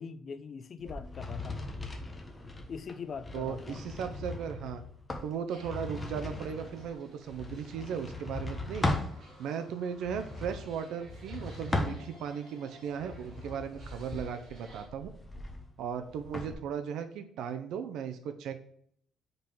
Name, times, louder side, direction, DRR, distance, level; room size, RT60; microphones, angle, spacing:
voice 1, 0.0-1.7 2.7-3.8, left 6 dB, 40° left, 0.5 m, -42 dB
sound 1, 0.8-9.1 9.9-12.4 12.9-16.5, left 2 dB, 15° left, 1.1 m, -38 dB
voice 2, 3.3-4.8 5.2-8.9 9.4-15.1 15.8-18.6, right 7 dB, 80° right, 0.6 m, -37 dB
sound 2, 5.5-14.9, right 1 dB, 45° right, 3.1 m, -56 dB
5.3 x 4.6 x 5.4 m
cardioid pair, 145°, 0 cm